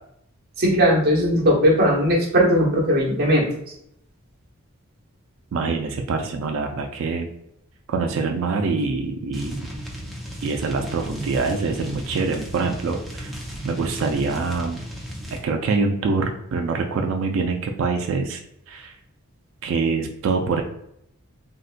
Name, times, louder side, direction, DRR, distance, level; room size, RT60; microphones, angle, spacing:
voice 1, 0.6-3.4, equal, 45° right, -3 dB, 0.9 m, -18 dB
voice 2, 5.5-7.3 7.9-9.7 10.4-13.4 13.6-14.8 15.3-18.4 18.7-18.9 19.6-20.6, right 4 dB, 65° right, 4 dB, 0.3 m, -25 dB
sound 1, 9.3-15.4, equal, ahead, 0.5 m, -34 dB
3.9 x 2.1 x 2.4 m, 0.75 s
head